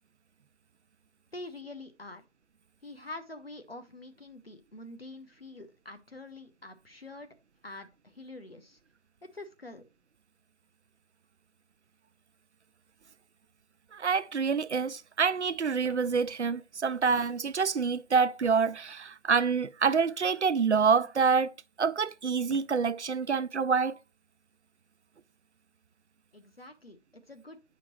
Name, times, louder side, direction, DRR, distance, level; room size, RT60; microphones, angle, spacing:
voice 1, 1.3-2.2 2.8-7.3 7.6-8.8 9.2-9.8 26.3-27.6, left 2 dB, 55° left, 0.8 m, -46 dB
voice 2, 13.9-21.5 21.8-24.0, right 5 dB, 65° right, 0.5 m, -27 dB
sound 1, 15.8-16.1 17.1-17.4 18.4-18.6 19.7-20.1 21.0-21.4 22.5-22.8, left 1 dB, 80° left, 1.8 m, -52 dB
8.8 x 5.1 x 2.9 m
figure-of-eight pair, 170°, 36 cm